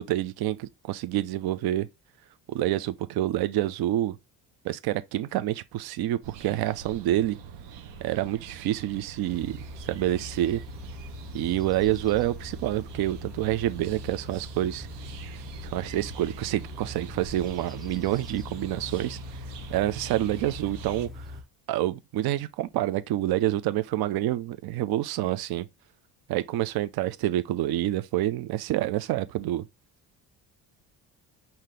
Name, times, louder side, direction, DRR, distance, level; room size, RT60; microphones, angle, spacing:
voice 1, 0.0-1.9 2.5-4.2 4.6-7.4 8.0-10.6 11.3-14.9 15.6-19.2 19.7-21.4 21.7-25.7 26.3-29.7, right 14 dB, 65° right, 0.6 m, -28 dB
sound 1, 6.2-21.1, right 7 dB, 80° right, 0.9 m, -44 dB
sound 2, 9.3-21.4, left 2 dB, ahead, 0.6 m, -42 dB
5.7 x 2.8 x 3.2 m
cardioid pair, 150°, 41 cm